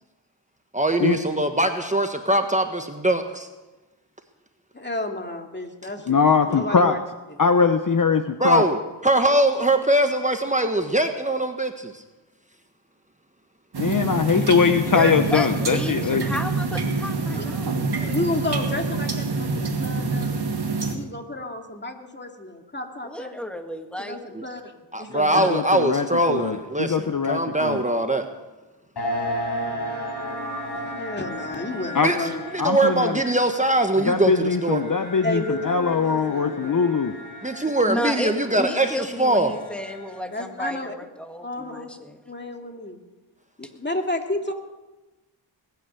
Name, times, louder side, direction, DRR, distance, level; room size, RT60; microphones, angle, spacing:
voice 1, 0.7-3.5 8.4-12.0 18.0-18.1 24.3-24.4 24.9-28.3 32.0-32.2 32.5-34.8 37.4-39.5, right 1 dB, 15° right, 5 dB, 1.4 m, -22 dB
voice 2, 4.7-7.0 7.3-7.4 18.0-20.4 20.9-23.4 24.0-24.7 25.0-25.5 30.7-32.5 35.2-36.8 40.3-40.9 41.4-41.9 42.3-43.0 43.6-44.5, left 2 dB, 20° left, 3 dB, 2.3 m, -31 dB
voice 3, 6.1-7.0 7.4-8.7 13.8-16.3 25.3-27.8 31.9-32.1 32.6-33.2 34.0-37.1, left 5 dB, 45° left, 9 dB, 0.9 m, -21 dB
sound 1, 13.7-20.9, right 3 dB, 55° right, 2.5 m, -26 dB
voice 4, 14.9-17.8 23.0-24.2 37.9-42.2, equal, ahead, 5 dB, 1.9 m, -32 dB
sound 2, 29.0-40.4, equal, 60° left, 5.3 m, -35 dB
20.5 x 9.5 x 6.8 m, 1.1 s
cardioid pair, 60°, 47 cm